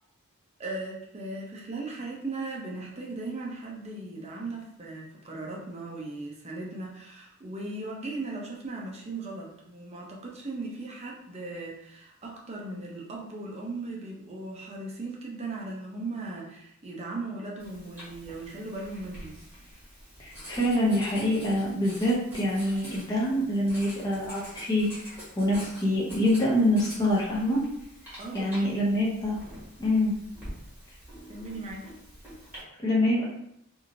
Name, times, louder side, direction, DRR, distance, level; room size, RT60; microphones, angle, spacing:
voice 1, 0.6-19.4 28.2-28.7 31.3-31.9, right 2 dB, 30° right, -2 dB, 0.5 m, -38 dB
Writing, 17.6-32.6, equal, 10° right, 1.1 m, -46 dB
voice 2, 20.2-24.9 25.4-27.6 28.3-29.4 29.8-30.1 32.8-33.3, left 1 dB, 15° left, -5 dB, 0.6 m, -25 dB
3.0 x 2.6 x 2.6 m, 0.77 s
head